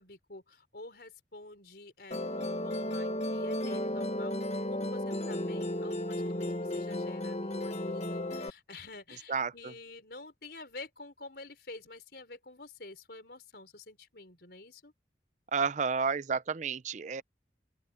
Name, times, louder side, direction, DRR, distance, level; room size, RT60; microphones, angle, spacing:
voice 1, 0.0-4.4 4.7-14.9, left 2 dB, 60° left, 4.9 m, -49 dB
Musical instrument, 2.1-8.5, left 1 dB, 35° left, 1.5 m, -34 dB
voice 2, 15.5-17.2, right 5 dB, 40° right, 0.5 m, -30 dB
open air
head